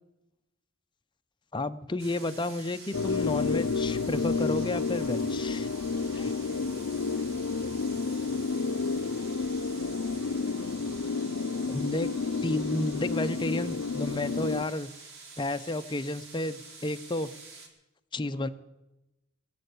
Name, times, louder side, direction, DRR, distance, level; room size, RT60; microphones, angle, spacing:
voice 1, 1.5-5.7 6.1-6.3 11.7-12.1 12.4-14.9 15.4-17.3 18.1-18.5, left 2 dB, 25° left, 9 dB, 0.6 m, -31 dB
sound 1, 2.0-17.7, right 4 dB, 65° right, 2.2 m, -48 dB
sound 2, 2.9-14.6, left 4 dB, 75° left, 0.5 m, -30 dB
voice 2, 5.6-7.5 18.2-18.5, equal, 45° right, 9 dB, 0.9 m, -53 dB
sound 3, 7.0-11.9, left 4 dB, 50° left, 2.1 m, -56 dB
18.5 x 7.7 x 8.3 m, 0.95 s
head